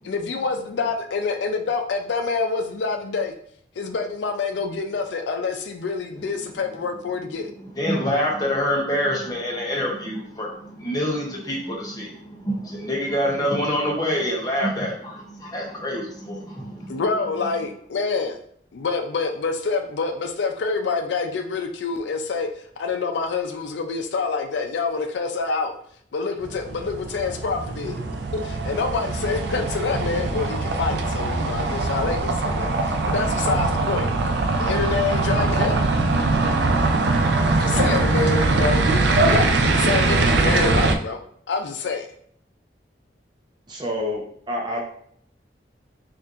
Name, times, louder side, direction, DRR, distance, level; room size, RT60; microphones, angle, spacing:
voice 1, 0.0-3.3 3.8-7.5 16.9-18.4 18.7-22.5 22.8-25.7 26.1-28.0 28.3-34.1 34.6-35.8 37.6-41.2 41.5-42.1, left 4 dB, 80° left, 5 dB, 0.4 m, -26 dB
voice 2, 7.5-17.0, equal, 20° left, -2 dB, 0.8 m, -26 dB
sound 1, 26.4-41.0, right 3 dB, 70° right, 0.4 m, -22 dB
voice 3, 43.7-44.8, left 1 dB, 25° right, -2 dB, 0.7 m, -28 dB
4.4 x 2.5 x 2.5 m, 0.63 s
head